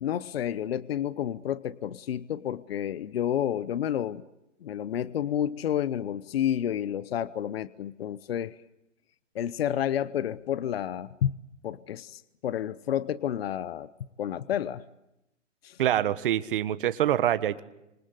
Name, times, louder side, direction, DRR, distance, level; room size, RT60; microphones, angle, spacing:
voice 1, 0.0-4.2 4.6-8.5 9.3-11.3 11.6-13.9 14.2-14.8 15.6-15.8, left 10 dB, 50° left, 18 dB, 0.9 m, -30 dB
voice 2, 15.8-17.6, right 11 dB, 45° right, 14 dB, 1.5 m, -25 dB
26.5 x 26.0 x 8.1 m, 0.90 s
hypercardioid pair, 170°, 37 cm